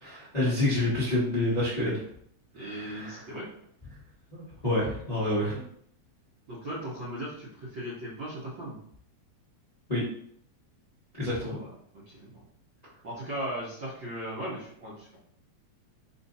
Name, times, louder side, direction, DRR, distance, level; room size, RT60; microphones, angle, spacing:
voice 1, 0.0-2.0 2.6-3.2 4.3-5.6 9.9-10.0 11.2-11.5, left 1 dB, 25° left, -10 dB, 0.8 m, -28 dB
voice 2, 2.5-3.5 6.5-8.8 11.3-11.7 12.1-12.4 13.0-15.2, right 1 dB, 60° right, -9 dB, 1.3 m, -37 dB
4.4 x 2.5 x 4.0 m, 0.65 s
omnidirectional pair, 3.3 m